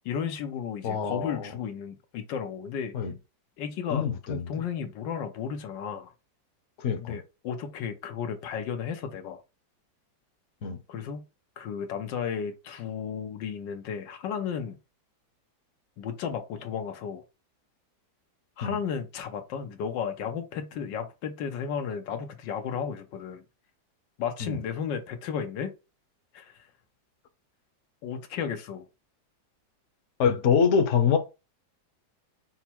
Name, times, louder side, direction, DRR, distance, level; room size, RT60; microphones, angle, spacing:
voice 1, 0.0-2.9 3.6-6.1 7.0-9.4 10.9-11.2 11.6-14.8 16.0-17.2 18.6-23.4 24.2-25.7 26.3-26.7 28.0-28.9, left 7 dB, 90° left, 1.5 m, -34 dB
voice 2, 0.8-1.5 2.9-3.1 3.9-4.7 6.8-7.2 10.6-10.8 18.6-18.8 24.4-24.6 30.2-31.2, left 6 dB, 55° left, 0.9 m, -25 dB
5.7 x 2.0 x 4.3 m
omnidirectional pair, 1.9 m